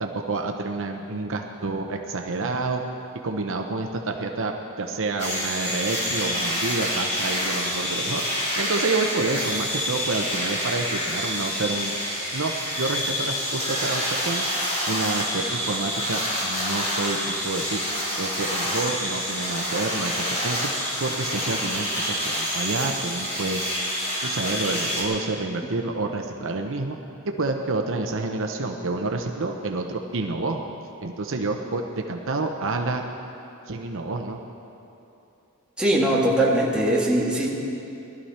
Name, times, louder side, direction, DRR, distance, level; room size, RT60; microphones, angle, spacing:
voice 1, 0.0-2.8 3.2-8.2 8.6-11.9 12.3-14.4 14.9-17.9 18.2-20.7 21.0-23.7 24.2-27.0 27.3-30.6 31.0-33.0 33.7-34.4, right 3 dB, 60° right, 3 dB, 0.8 m, -28 dB
sound 1, 5.2-25.0, equal, 30° left, 3.2 m, -27 dB
voice 2, 35.8-37.5, right 1 dB, 5° right, -5 dB, 2.0 m, -21 dB
18.5 x 12.5 x 4.3 m, 2.8 s
head